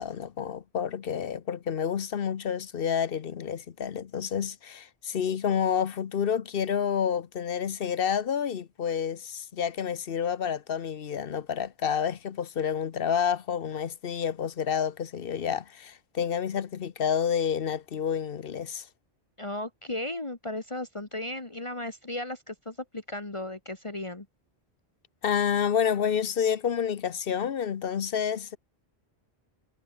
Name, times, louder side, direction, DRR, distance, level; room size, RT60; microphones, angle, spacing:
voice 1, 0.0-18.9 25.2-28.6, left 8 dB, 60° left, 1.0 m, -29 dB
voice 2, 19.4-24.3, left 1 dB, 30° left, 1.8 m, -35 dB
omnidirectional pair, 1.1 m